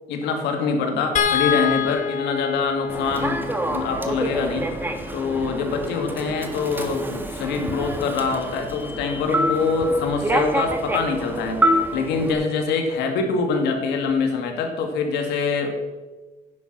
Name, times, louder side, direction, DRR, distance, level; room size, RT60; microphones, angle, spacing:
voice 1, 0.1-4.7 5.1-11.6 11.9-15.7, left 4 dB, 80° left, 4 dB, 2.1 m, -24 dB
sound 1, 1.2-7.5 9.0-9.2 9.5-9.7, left 7 dB, 50° left, 1.3 m, -29 dB
Human voice / Subway metro underground, 2.9-12.3, right 1 dB, 10° right, 1.3 m, -27 dB
10.5 x 8.0 x 6.1 m, 1.2 s
cardioid pair, 110°, 17 cm